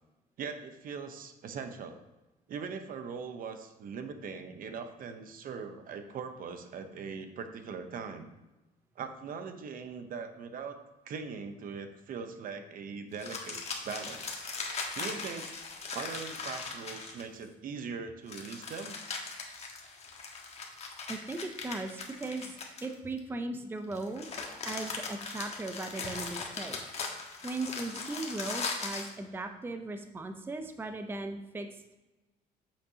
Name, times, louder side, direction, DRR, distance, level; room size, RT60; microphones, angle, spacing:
voice 1, 0.4-2.0 2.5-8.3 9.0-14.4 14.9-15.5 15.9-19.0, right 5 dB, 55° right, 8 dB, 0.8 m, -41 dB
sound 1, 13.1-17.4 18.3-23.2 23.9-29.1, left 4 dB, 40° left, 1.3 m, -39 dB
voice 2, 21.1-24.3 24.6-26.8 27.4-31.9, right 2 dB, 15° right, 7 dB, 0.5 m, -38 dB
8.1 x 6.7 x 2.8 m, 1.1 s
cardioid pair, 110°, 17 cm